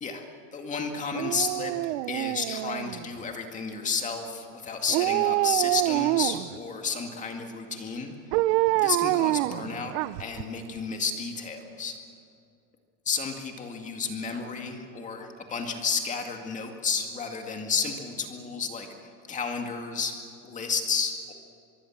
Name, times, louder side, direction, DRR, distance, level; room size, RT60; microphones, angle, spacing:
voice 1, 0.5-8.1 8.7-12.0 13.1-20.1 20.4-21.3, left 5 dB, 20° left, 4 dB, 2.1 m, -32 dB
Dog, 1.1-3.2 4.9-6.6 8.3-10.4 10.8-10.9, right 17 dB, 55° right, 0.6 m, -26 dB
24.5 x 23.0 x 7.4 m, 2.4 s
supercardioid pair, 160°, 38 cm